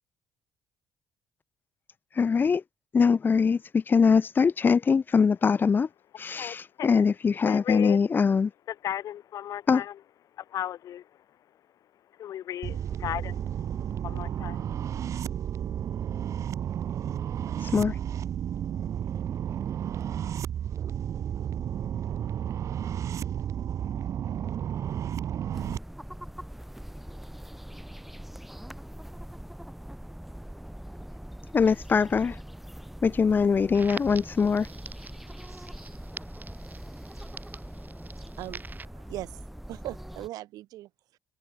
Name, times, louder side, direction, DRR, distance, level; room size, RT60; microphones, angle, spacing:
voice 1, 2.1-2.6 2.9-5.9 6.2-8.5 9.7-9.8 17.6-18.0 31.5-32.4 33.0-34.7, left 5 dB, 30° left, 0.7 m, -22 dB
voice 2, 6.3-7.0 7.4-8.0 8.7-10.0 10.3-14.9, left 11 dB, 65° left, 4.3 m, -37 dB
sound 1, 12.6-25.8, right 9 dB, 55° right, 1.3 m, -32 dB
sound 2, 25.5-40.3, equal, 5° right, 3.6 m, -42 dB
Crackle, 33.7-38.8, right 4 dB, 30° right, 6.3 m, -45 dB
voice 3, 38.4-39.4 39.7-41.2, right 15 dB, 80° right, 2.9 m, -40 dB
cardioid pair, 100°, 6 cm